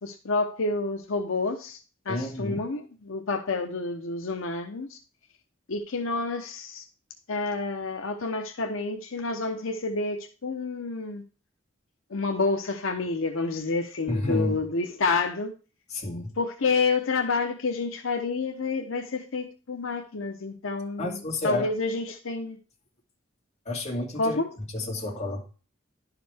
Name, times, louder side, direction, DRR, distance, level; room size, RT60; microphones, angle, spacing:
voice 1, 0.0-1.8 2.1-5.0 5.7-6.8 7.3-11.2 12.1-15.5 16.4-22.6 24.2-24.5, left 3 dB, 85° left, 0.8 m, -29 dB
voice 2, 2.1-2.6 14.1-14.5 15.9-16.3 21.0-21.7 23.7-24.4 24.7-25.4, left 1 dB, 35° left, 2.3 m, -30 dB
11.0 x 5.0 x 3.4 m
head